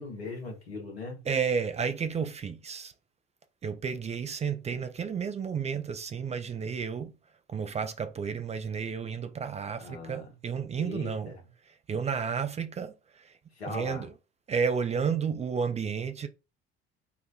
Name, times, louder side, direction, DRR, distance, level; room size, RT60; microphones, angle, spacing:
voice 1, 0.0-1.2 9.8-10.3 10.8-11.4 13.6-14.1, left 3 dB, 85° left, 1.0 m, -39 dB
voice 2, 1.3-2.9 3.6-7.1 7.5-11.3 11.9-13.4 13.7-14.1 14.5-16.3, right 6 dB, 20° right, 0.4 m, -32 dB
4.1 x 2.1 x 2.6 m
figure-of-eight pair, 55°, 31 cm